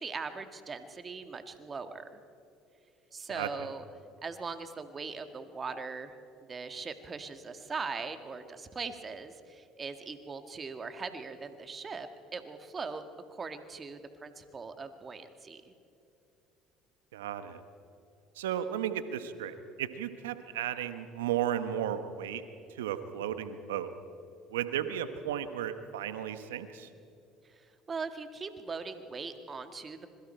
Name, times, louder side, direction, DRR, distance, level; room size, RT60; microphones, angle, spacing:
voice 1, 0.0-2.2 3.1-3.8 4.2-6.1 6.5-13.0 13.3-15.7 27.9-30.1, right 4 dB, 35° right, 8 dB, 1.9 m, -40 dB
voice 2, 3.3-3.7 17.1-17.6 18.4-22.4 22.7-23.9 24.5-26.9, right 10 dB, 85° right, 10 dB, 1.1 m, -34 dB
26.0 x 22.0 x 4.5 m, 2.8 s
hypercardioid pair, 70°, 0 cm